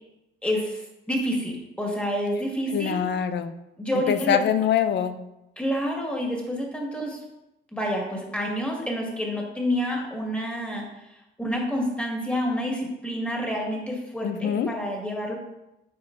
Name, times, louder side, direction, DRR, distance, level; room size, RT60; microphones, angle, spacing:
voice 1, 0.4-3.0 3.8-4.4 5.6-7.2 7.7-10.8 11.1-15.3, equal, 5° left, -1 dB, 1.7 m, -28 dB
voice 2, 2.7-3.5 4.1-5.2 14.2-14.7, left 9 dB, 60° left, 11 dB, 0.5 m, -24 dB
9.4 x 4.3 x 2.6 m, 0.90 s
cardioid pair, 90°, 20 cm